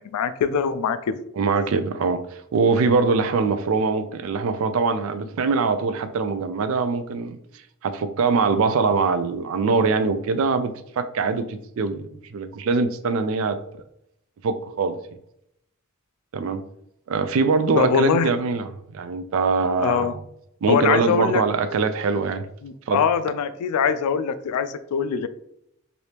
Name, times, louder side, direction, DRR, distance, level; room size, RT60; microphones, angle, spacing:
voice 1, 0.0-1.2 17.8-18.3 19.8-20.2 20.7-21.4 22.6-25.3, left 6 dB, 90° left, 12 dB, 0.3 m, -23 dB
voice 2, 1.4-2.2 2.5-7.4 7.8-12.0 12.3-13.6 14.4-15.0 16.3-16.6 17.1-20.1 20.6-22.5 22.9-23.0, right 4 dB, 65° right, 11 dB, 0.3 m, -23 dB
3.2 x 2.6 x 2.9 m, 0.76 s
head